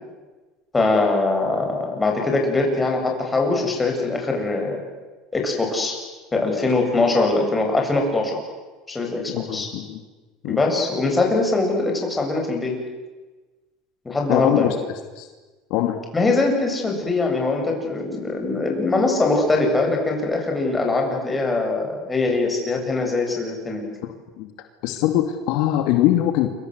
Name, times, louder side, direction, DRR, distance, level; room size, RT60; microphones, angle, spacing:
voice 1, 0.7-4.8 5.3-6.0 6.3-8.4 8.9-9.2 9.5-9.7 10.4-12.8 14.0-14.7 16.1-23.8, left 3 dB, 15° left, 1 dB, 7.8 m, -22 dB
voice 2, 9.3-10.0 10.4-10.6 14.3-14.7 15.2-15.3 15.7-16.0 24.0-24.5 24.8-26.5, left 13 dB, 65° left, 6 dB, 2.5 m, -22 dB
28.5 x 24.5 x 8.1 m, 1.2 s
supercardioid pair, 135°, 0 cm